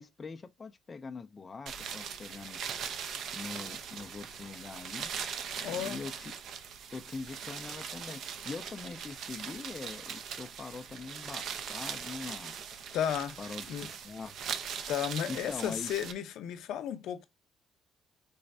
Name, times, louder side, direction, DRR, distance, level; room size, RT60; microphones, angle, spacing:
voice 1, 0.0-2.6 3.3-5.1 5.6-6.3 6.9-12.5 13.4-14.4 15.3-15.9, left 4 dB, 20° left, 0.3 m, -43 dB
sound 1, 1.7-16.1, right 7 dB, 55° right, 0.5 m, -40 dB
voice 2, 5.6-6.1 12.9-13.9 14.9-17.2, left 9 dB, 80° left, 0.6 m, -34 dB
4.1 x 3.1 x 2.6 m
cardioid pair, 175°, 0 cm